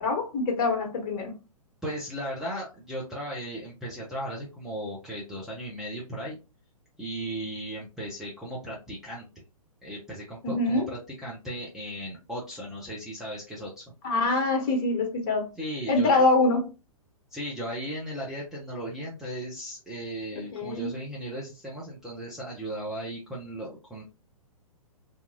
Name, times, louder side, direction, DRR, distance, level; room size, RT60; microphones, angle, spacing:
voice 1, 0.0-1.3 10.4-10.9 14.0-15.5 15.9-16.6 20.5-20.9, left 2 dB, 35° left, 1.0 m, -24 dB
voice 2, 1.8-6.4 7.0-9.2 9.8-13.8 15.6-16.1 17.3-24.0, right 1 dB, ahead, 0.5 m, -36 dB
2.8 x 2.4 x 2.5 m
figure-of-eight pair, 120°, 19 cm